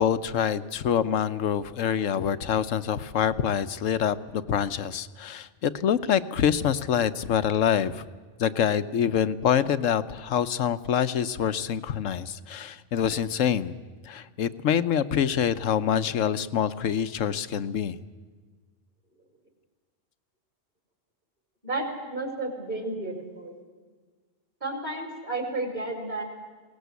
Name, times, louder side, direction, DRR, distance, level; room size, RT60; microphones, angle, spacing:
voice 1, 0.0-8.0 8.4-13.8 14.0-18.0, left 8 dB, 80° left, 12 dB, 1.2 m, -26 dB
voice 2, 21.6-23.6 24.6-26.2, right 2 dB, 35° right, 3 dB, 4.5 m, -32 dB
22.0 x 18.5 x 8.2 m, 1.5 s
omnidirectional pair, 1.3 m